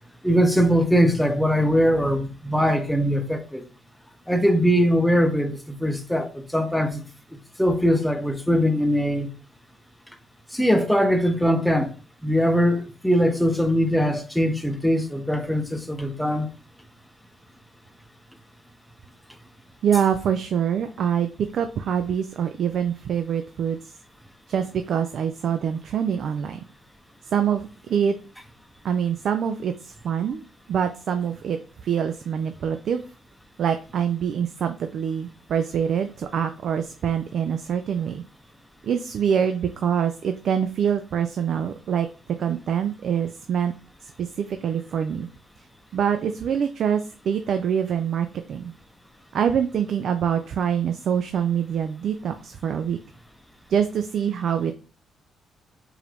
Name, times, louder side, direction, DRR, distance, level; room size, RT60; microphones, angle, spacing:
voice 1, 0.2-3.6 4.3-7.1 7.3-9.3 10.5-11.9 12.2-16.5, equal, 5° left, 0.7 m, -21 dB
voice 2, 19.8-23.9 24.5-26.6 27.3-28.1 28.8-30.4 30.7-31.6 31.8-33.0 33.6-38.2 38.8-42.1 42.4-43.7 44.2-45.3 45.9-48.7 49.3-53.0 53.7-54.7, right 8 dB, 65° right, 0.4 m, -25 dB
4.7 x 2.6 x 3.4 m
cardioid pair, 90°, 0 cm